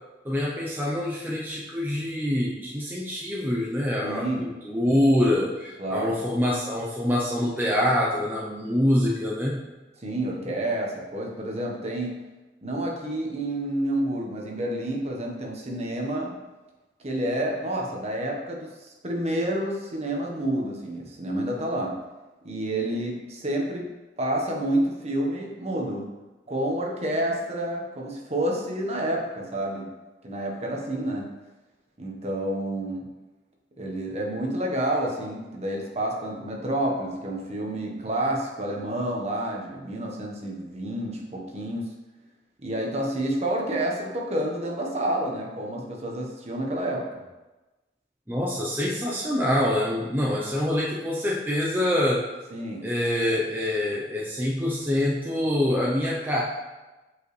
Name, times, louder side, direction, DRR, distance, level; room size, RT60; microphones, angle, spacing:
voice 1, 0.2-9.6 48.3-52.3 52.8-56.4, left 1 dB, 10° right, -5 dB, 0.7 m, -25 dB
voice 2, 4.0-4.4 5.8-6.2 10.0-12.2 12.6-16.3 17.0-22.0 22.4-23.8 24.2-26.1 26.5-29.9 30.2-31.3 32.0-33.1 33.8-41.8 42.6-47.2 52.5-52.8, right 1 dB, 35° right, -1 dB, 1.2 m, -29 dB
7.6 x 5.1 x 3.2 m, 1.1 s
head